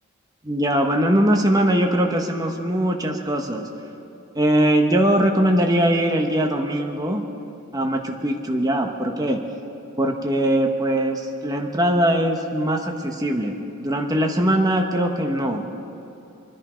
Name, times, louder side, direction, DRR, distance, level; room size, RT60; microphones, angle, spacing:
voice 1, 0.4-3.7 4.3-7.2 7.7-9.4 10.0-15.6, right 1 dB, 15° right, 3 dB, 1.0 m, -21 dB
27.0 x 10.5 x 5.1 m, 3.0 s
head